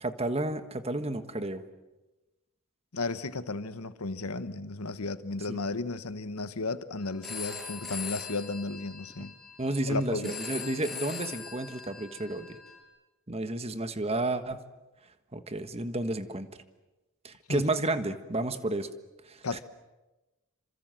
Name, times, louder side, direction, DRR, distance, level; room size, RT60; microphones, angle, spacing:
voice 1, 0.0-1.6 5.5-5.6 9.6-12.6 13.3-14.6 15.3-16.5 17.2-18.9 19.3-19.6, right 2 dB, 30° right, 1.5 m, -31 dB
voice 2, 2.9-9.3 9.9-10.4 17.5-17.6 19.4-19.6, left 3 dB, 80° left, 1.3 m, -34 dB
Telephone, 7.2-12.8, left 5 dB, ahead, 6.9 m, -41 dB
29.0 x 26.0 x 7.7 m
head